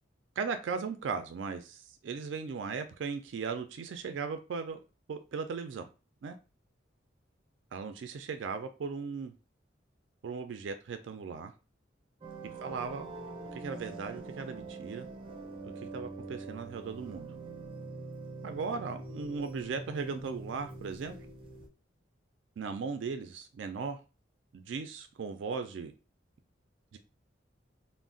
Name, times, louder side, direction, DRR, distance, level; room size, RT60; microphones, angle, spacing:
voice 1, 0.4-4.8 5.1-5.9 6.2-6.4 7.7-9.3 10.2-11.5 12.6-13.1 13.5-15.1 15.6-17.3 18.4-21.1 22.6-24.0 24.5-25.9 26.9-27.0, right 5 dB, 75° right, 0.4 m, -37 dB
sound 1, 12.2-21.7, right 3 dB, 30° right, 0.6 m, -44 dB
2.3 x 2.1 x 3.7 m
head